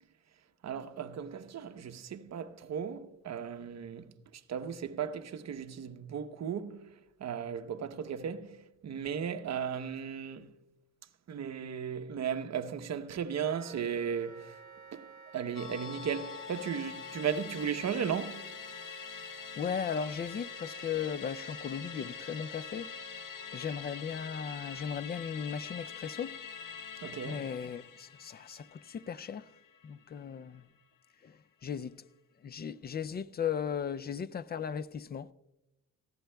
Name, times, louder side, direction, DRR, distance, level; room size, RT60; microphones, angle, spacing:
voice 1, 0.6-4.1 4.5-6.9 7.2-8.6 8.8-10.5 11.3-14.4 14.9-15.0 15.3-18.5 27.0-27.4, right 7 dB, 45° right, 0.9 m, -36 dB
Wind instrument woodwind instrument, 13.4-24.9, right 4 dB, 30° right, 2.8 m, -52 dB
Musical instrument, 15.6-30.2 30.6-30.7, left 7 dB, 65° left, 0.9 m, -45 dB
voice 2, 19.6-22.9 23.5-26.4 27.2-29.5 29.8-30.6 31.2-31.3 31.6-31.9 32.4-35.3, left 7 dB, 30° left, 0.3 m, -37 dB
19.0 x 15.0 x 2.2 m
cardioid pair, 90°, 36 cm